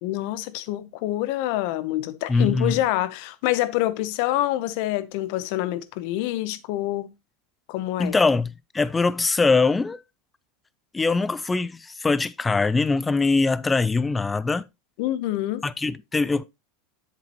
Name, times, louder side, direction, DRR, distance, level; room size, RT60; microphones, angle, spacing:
voice 1, 0.0-7.1 7.7-8.2 15.0-15.6, left 15 dB, 65° left, 0.8 m, -26 dB
voice 2, 2.3-2.8 8.0-10.0 10.9-14.6 15.6-16.4, left 3 dB, 15° left, 0.5 m, -22 dB
7.6 x 7.1 x 3.0 m
hypercardioid pair, 105°, 0 cm